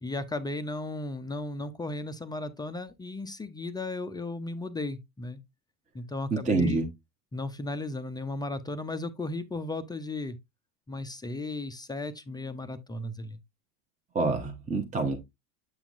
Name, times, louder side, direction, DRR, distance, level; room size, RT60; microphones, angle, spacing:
voice 1, 0.0-5.4 5.9-6.8 7.3-10.4 10.9-13.4, left 2 dB, 10° left, 0.4 m, -35 dB
voice 2, 6.3-6.9 14.1-15.2, right 3 dB, 15° right, 0.8 m, -27 dB
8.2 x 5.8 x 2.5 m
supercardioid pair, 110°, 46 cm